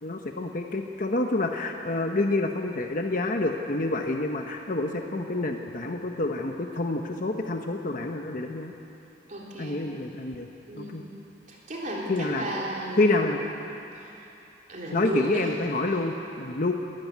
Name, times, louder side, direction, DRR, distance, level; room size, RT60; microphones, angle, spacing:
voice 1, 0.0-8.7 9.6-10.5 10.7-11.0 12.1-12.4 13.0-13.4 14.9-16.7, left 2 dB, 45° left, 3 dB, 1.0 m, -28 dB
voice 2, 9.3-9.8 10.7-11.1 11.5-13.3 14.0-14.3 14.7-15.5, right 1 dB, 45° right, -4 dB, 3.7 m, -34 dB
21.5 x 13.0 x 9.4 m, 3.0 s
head